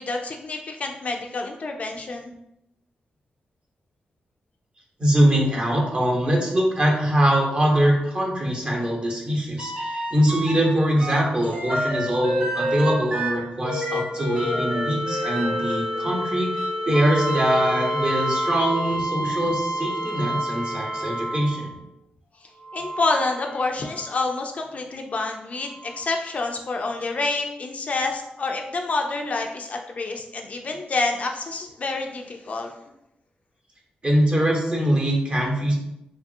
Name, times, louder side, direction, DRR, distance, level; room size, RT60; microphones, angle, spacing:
voice 1, 0.0-2.3 22.7-32.7, left 3 dB, 50° left, 3 dB, 0.3 m, -28 dB
voice 2, 5.0-21.7 34.0-35.8, equal, 35° right, -1 dB, 0.8 m, -23 dB
sound 1, 9.6-10.7 11.0-21.8 22.6-24.2 25.9-26.0, equal, 70° right, 1.0 m, -28 dB
3.0 x 2.3 x 2.6 m, 0.83 s
cardioid pair, 80°, 3 cm